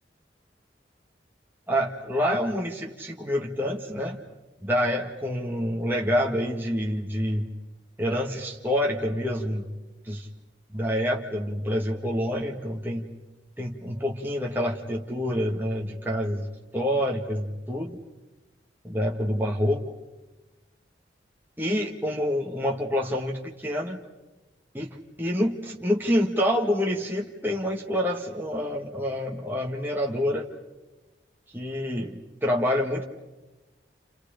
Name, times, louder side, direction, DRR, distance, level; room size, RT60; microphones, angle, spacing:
voice 1, 1.7-4.2 4.6-7.5 8.0-9.7 10.0-10.3 10.7-13.1 13.6-16.5 16.7-18.0 18.8-19.8 21.6-24.0 24.7-30.5 31.5-33.0, equal, 10° right, -1 dB, 1.7 m, -27 dB
30.0 x 30.0 x 5.2 m, 1.1 s
head